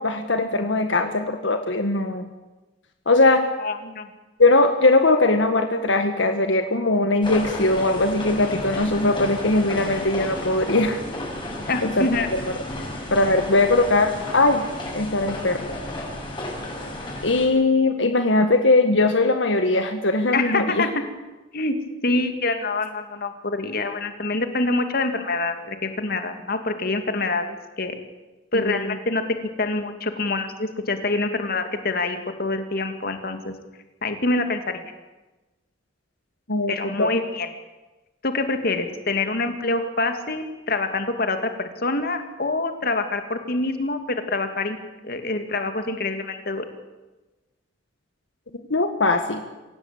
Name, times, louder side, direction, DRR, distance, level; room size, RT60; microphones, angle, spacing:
voice 1, 0.0-2.3 3.1-3.4 4.4-11.0 11.8-12.1 13.1-14.6 14.9-15.7 17.2-20.9 28.5-29.0 36.5-37.1 48.7-49.4, left 2 dB, 75° left, 6 dB, 1.8 m, -20 dB
voice 2, 3.6-4.1 11.7-12.3 20.3-20.9 21.5-21.8 22.0-28.0 28.5-29.2 29.6-33.5 34.0-34.8 36.7-37.5 38.2-44.8 45.0-46.6, left 2 dB, 55° left, 7 dB, 2.5 m, -26 dB
sound 1, 7.2-17.5, left 1 dB, 25° left, 7.1 m, -33 dB
26.0 x 17.0 x 8.9 m, 1.1 s
head